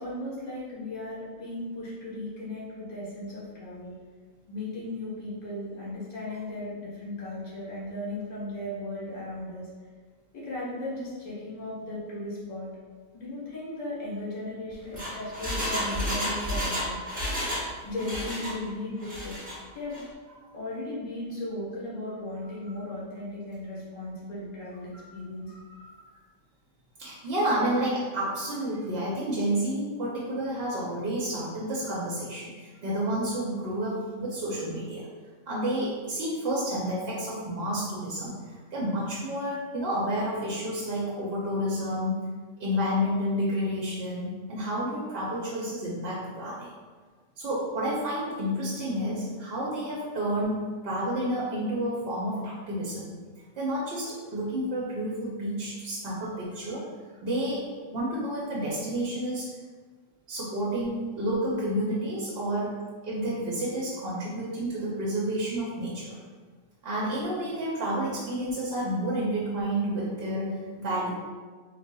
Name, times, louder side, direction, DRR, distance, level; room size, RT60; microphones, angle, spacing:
voice 1, 0.0-3.9 4.5-9.7 10.3-12.7 13.1-17.3 17.8-19.3 19.7-20.0 20.5-25.5, left 1 dB, 90° left, -8 dB, 1.7 m, -36 dB
Engine, 14.7-17.7 17.9-18.6 19.0-19.6 19.9-20.0, equal, 10° right, 0.6 m, -31 dB
voice 2, 25.4-25.9 27.0-35.0 35.5-42.3 42.6-46.7 47.4-53.1 53.6-56.8 57.2-59.5 60.3-62.8 63.0-66.2 66.8-71.1, equal, 55° right, -6 dB, 0.7 m, -30 dB
3.9 x 2.8 x 2.2 m, 1.5 s
omnidirectional pair, 1.4 m